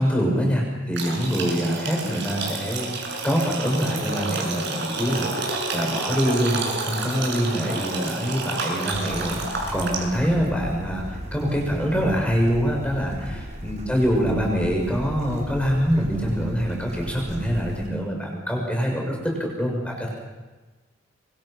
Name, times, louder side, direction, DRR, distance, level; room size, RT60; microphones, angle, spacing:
voice 1, 0.0-20.1, equal, 5° left, 0 dB, 6.3 m, -25 dB
sound 1, 0.9-10.3, right 3 dB, 60° right, 6.7 m, -30 dB
Bird / Stream, 8.9-17.9, equal, 35° right, 5.5 m, -36 dB
25.5 x 24.5 x 5.9 m, 1.2 s
head